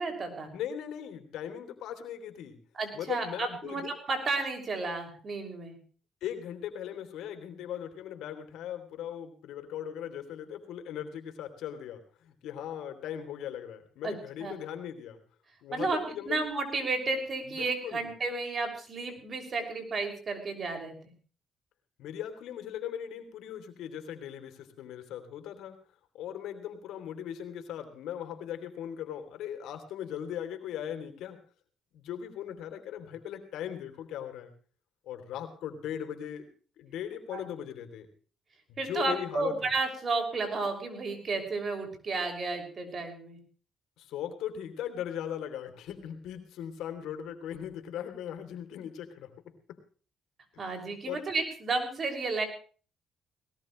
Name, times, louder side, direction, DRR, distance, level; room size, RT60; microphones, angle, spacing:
voice 1, 0.0-0.5 2.7-5.8 14.0-14.5 15.7-16.0 16.3-21.1 37.3-37.4 38.8-43.4 50.6-52.5, right 3 dB, 45° right, 5 dB, 6.4 m, -32 dB
voice 2, 0.5-2.6 2.9-3.9 6.2-15.2 15.6-16.4 17.5-18.1 22.0-25.8 26.1-31.4 31.9-34.5 35.0-36.5 36.8-38.1 38.7-39.5 44.0-49.8 51.0-51.2, left 10 dB, 85° left, 7 dB, 3.2 m, -39 dB
20.0 x 19.5 x 3.3 m, 0.41 s
cardioid pair, 90°, 0 cm